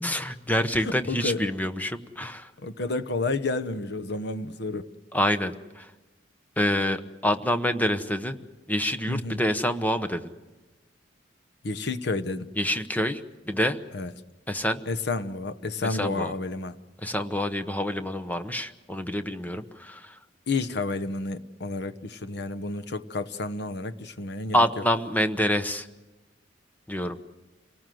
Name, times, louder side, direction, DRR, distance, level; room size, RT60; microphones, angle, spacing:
voice 1, 0.0-2.5 5.1-5.9 6.6-8.4 8.7-10.3 12.6-13.2 13.5-13.8 14.5-14.8 15.8-16.3 17.0-20.1 24.5-25.9 26.9-27.2, equal, 10° left, 1.0 m, -27 dB
voice 2, 0.8-1.4 2.6-4.9 9.1-9.4 11.6-12.5 13.9-14.1 14.9-16.8 20.5-24.6, left 3 dB, 65° left, 1.0 m, -30 dB
27.5 x 19.0 x 7.7 m
head